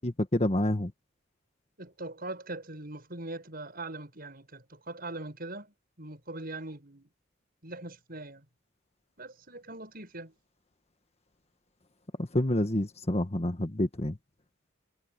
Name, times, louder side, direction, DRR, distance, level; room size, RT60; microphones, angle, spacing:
voice 1, 0.0-0.9 12.2-14.2, left 1 dB, 30° left, 1.5 m, -28 dB
voice 2, 1.8-7.1 7.6-8.5 9.2-10.3, right 2 dB, 50° right, 7.7 m, -41 dB
head